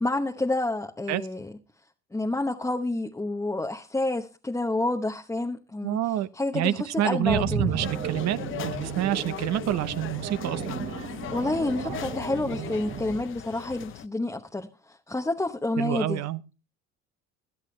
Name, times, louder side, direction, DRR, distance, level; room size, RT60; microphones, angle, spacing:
voice 1, 0.0-1.5 2.1-6.0 6.3-7.7 11.3-16.2, left 2 dB, 10° left, 0.9 m, -29 dB
voice 2, 5.8-6.3 6.5-10.8 15.8-16.4, right 12 dB, 60° right, 0.9 m, -28 dB
sound 1, 7.2-13.2, right 5 dB, 80° right, 3.2 m, -34 dB
sound 2, 7.8-14.1, left 12 dB, 40° left, 0.5 m, -39 dB
17.5 x 11.0 x 3.2 m
supercardioid pair, 95°, 31 cm